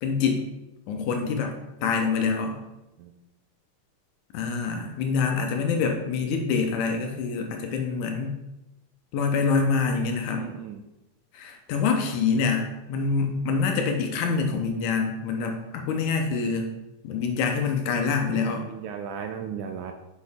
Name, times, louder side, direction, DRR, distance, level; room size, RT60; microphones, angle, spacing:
voice 1, 0.0-0.4 0.9-2.6 4.3-8.4 9.1-10.5 11.3-16.7 17.0-18.7, left 5 dB, 75° left, 3 dB, 2.0 m, -26 dB
voice 2, 10.4-10.8 18.6-19.9, right 7 dB, 80° right, 6 dB, 1.8 m, -35 dB
6.4 x 5.3 x 3.5 m, 0.95 s
omnidirectional pair, 3.8 m